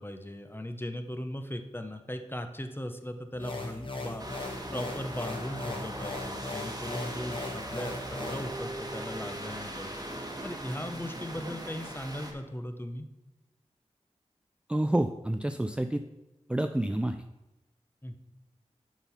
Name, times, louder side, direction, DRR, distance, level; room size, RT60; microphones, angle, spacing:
voice 1, 0.0-4.3 4.7-10.1 10.4-13.1 18.0-18.2, left 1 dB, 15° left, 7 dB, 0.7 m, -38 dB
sound 1, 3.3-8.5, left 3 dB, 40° left, 1.3 m, -39 dB
sound 2, 4.2-12.3, right 1 dB, 30° right, 1.3 m, -39 dB
voice 2, 14.7-16.0 16.5-17.2, right 1 dB, 10° right, 7 dB, 0.3 m, -28 dB
7.1 x 3.9 x 5.6 m, 0.99 s
cardioid pair, 40°, 12 cm